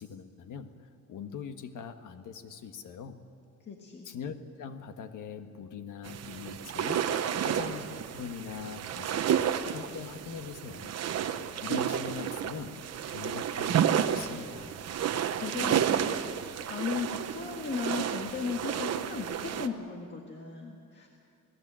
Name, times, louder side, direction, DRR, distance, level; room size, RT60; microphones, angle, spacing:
voice 1, 0.0-3.2 4.0-11.0 11.6-14.8, left 6 dB, 75° left, 8 dB, 1.5 m, -42 dB
voice 2, 3.7-4.1 15.3-21.1, left 5 dB, 35° left, 1 dB, 1.7 m, -36 dB
sound 1, 6.0-19.7, right 9 dB, 55° right, 1.0 m, -31 dB
28.5 x 18.5 x 7.6 m, 2.5 s
wide cardioid pair, 180°, 31 cm